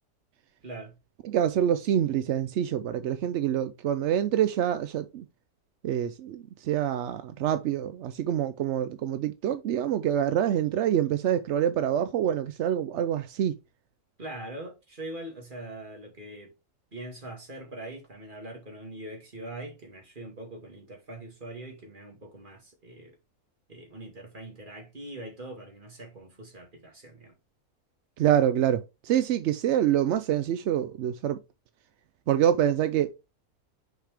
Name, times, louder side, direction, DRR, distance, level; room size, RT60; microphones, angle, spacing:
voice 1, 0.6-1.0 14.2-16.5 16.9-23.1 23.7-27.3, right 1 dB, 35° right, 2.4 m, -42 dB
voice 2, 1.2-5.3 5.8-13.6 28.2-31.4 32.3-33.1, right 10 dB, 65° right, 0.7 m, -26 dB
6.5 x 4.9 x 3.4 m
omnidirectional pair, 1.6 m